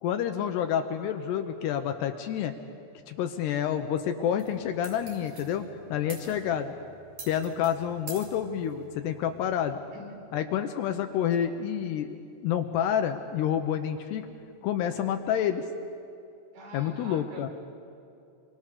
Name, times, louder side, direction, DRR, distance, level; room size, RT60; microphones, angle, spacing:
voice 1, 0.0-2.5 3.1-6.7 7.3-9.8 10.3-12.2 12.4-14.3 14.6-15.7 16.7-17.5, left 9 dB, 75° left, 7 dB, 2.7 m, -28 dB
sound 1, 4.4-9.5, right 4 dB, 50° right, 5.6 m, -48 dB
voice 2, 6.0-6.5 9.6-10.2 16.5-17.5, right 2 dB, 70° right, 0 dB, 6.1 m, -46 dB
27.5 x 24.0 x 6.7 m, 2.6 s
omnidirectional pair, 5.4 m